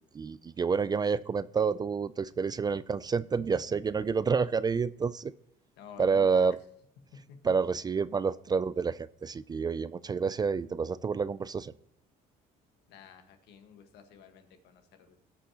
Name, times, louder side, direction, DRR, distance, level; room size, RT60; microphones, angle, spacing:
voice 1, 0.1-5.3 6.0-6.6 7.4-11.7, right 5 dB, 25° right, 17 dB, 0.3 m, -29 dB
voice 2, 5.8-6.4 7.3-7.4 12.9-15.2, left 7 dB, 90° left, 6 dB, 1.5 m, -52 dB
18.0 x 6.2 x 2.9 m, 0.71 s
cardioid pair, 110°, 17 cm